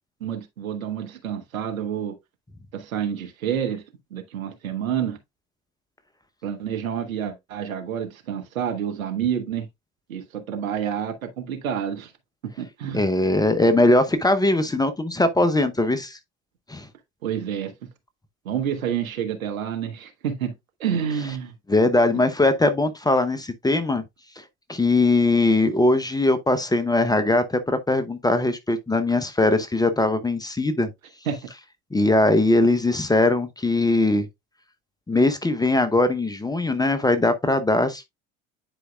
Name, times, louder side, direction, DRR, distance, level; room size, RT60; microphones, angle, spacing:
voice 1, 0.2-2.1 2.7-3.8 4.1-5.2 6.4-9.7 10.1-12.1 12.4-13.1 17.2-17.7 18.4-20.5 20.8-21.5 31.3-31.4, right 8 dB, 75° right, 1.2 m, -28 dB
voice 2, 12.9-16.2 16.7-16.9 21.7-24.0 24.7-30.9 31.9-34.3 35.1-38.0, left 2 dB, 10° left, 0.8 m, -20 dB
10.0 x 4.6 x 2.3 m
figure-of-eight pair, 65°, 41 cm